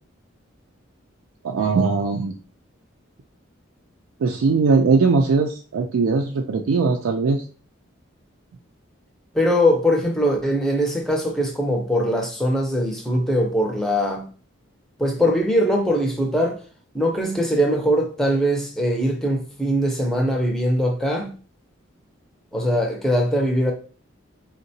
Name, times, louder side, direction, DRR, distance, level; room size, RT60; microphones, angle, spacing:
voice 1, 1.4-2.3 4.2-7.4, right 4 dB, 90° right, 0.4 m, -20 dB
voice 2, 9.3-14.3 15.0-16.6 16.9-21.3 22.5-23.7, equal, ahead, 0.5 m, -21 dB
3.7 x 2.1 x 2.7 m
head